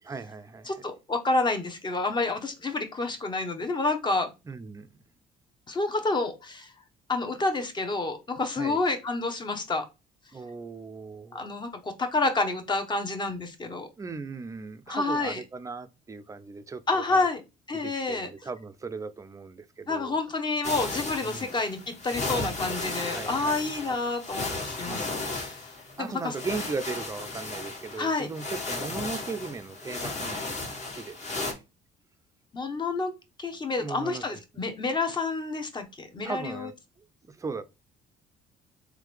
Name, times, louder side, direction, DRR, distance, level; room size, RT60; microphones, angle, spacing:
voice 1, 0.0-0.8 4.5-4.9 8.5-8.8 10.3-11.5 14.0-17.3 17.7-20.2 21.2-21.5 23.1-23.8 24.9-25.1 26.0-31.6 33.8-34.6 36.2-36.7 37.2-37.6, right 4 dB, 20° right, 0.5 m, -38 dB
voice 2, 0.7-4.3 5.7-6.7 7.1-9.9 11.3-13.9 14.9-15.4 16.9-17.4 17.7-18.3 19.9-25.7 26.0-26.3 28.0-28.3 32.5-33.1 33.4-36.7, left 3 dB, 25° left, 0.9 m, -29 dB
sound 1, 20.6-31.5, left 3 dB, 45° left, 1.5 m, -35 dB
3.7 x 3.3 x 3.2 m
cardioid pair, 110°, 17 cm